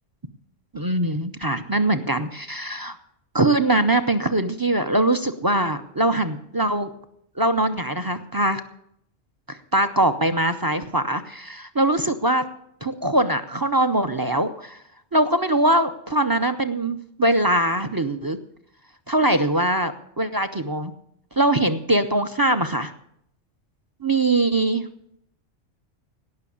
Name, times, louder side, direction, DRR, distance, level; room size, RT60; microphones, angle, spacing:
voice 1, 0.7-3.0 3.3-6.9 7.4-8.6 9.5-12.4 12.8-14.8 15.1-18.4 19.1-20.9 21.4-22.9 24.0-24.9, right 1 dB, 25° right, 11 dB, 0.5 m, -22 dB
17.5 x 6.1 x 8.5 m, 0.72 s
omnidirectional pair, 1.3 m